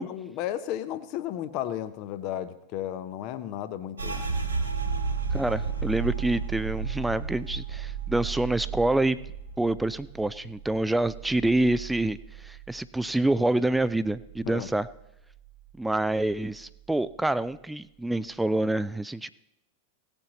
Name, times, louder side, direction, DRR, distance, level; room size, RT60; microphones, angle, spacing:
voice 1, 0.0-4.3 14.4-14.7, left 11 dB, 40° left, 12 dB, 0.7 m, -34 dB
sound 1, 4.0-13.4 13.7-14.9 15.2-15.7 16.2-16.7, right 5 dB, 85° right, 2.5 m, -34 dB
voice 2, 5.3-9.2 9.6-14.9 15.8-19.3, right 2 dB, 5° right, 15 dB, 0.4 m, -27 dB
17.5 x 6.9 x 4.1 m, 0.84 s
figure-of-eight pair, 90°, 0 cm